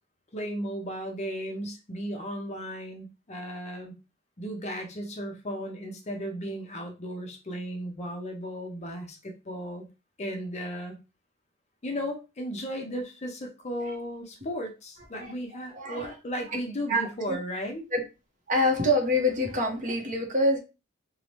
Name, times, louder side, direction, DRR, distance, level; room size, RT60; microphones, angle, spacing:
voice 1, 0.3-3.9 4.4-9.8 10.2-11.0 11.8-17.8, equal, 35° left, 2 dB, 0.6 m, -35 dB
voice 2, 15.2-16.1 16.9-17.4 17.9-18.0 18.5-20.6, left 1 dB, 40° right, 2 dB, 0.7 m, -26 dB
2.7 x 2.0 x 3.0 m, 0.28 s
head